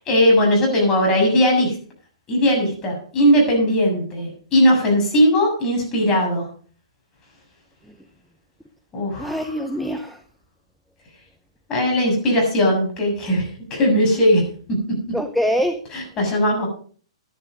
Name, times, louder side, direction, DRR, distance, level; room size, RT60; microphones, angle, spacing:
voice 1, 0.0-1.8 2.3-6.5 8.9-9.6 11.7-14.4 14.7-15.0 15.9-16.7, equal, 20° left, 0 dB, 6.9 m, -19 dB
voice 2, 9.2-10.2 15.1-15.8, equal, ahead, 7 dB, 0.8 m, -23 dB
12.5 x 11.0 x 5.2 m, 0.43 s
hypercardioid pair, 140°, 3 cm